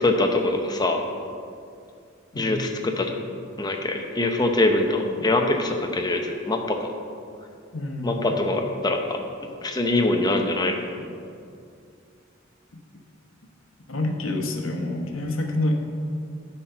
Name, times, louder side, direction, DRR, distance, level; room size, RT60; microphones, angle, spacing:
voice 1, 0.0-1.0 2.3-2.7 3.0-3.1 3.6-6.9 8.0-9.2 9.6-10.8, left 2 dB, 20° left, 3 dB, 0.8 m, -23 dB
voice 2, 7.7-8.3 12.7-12.8 13.9-15.7, left 2 dB, 85° left, 3 dB, 1.0 m, -27 dB
11.5 x 4.4 x 5.7 m, 2.3 s
head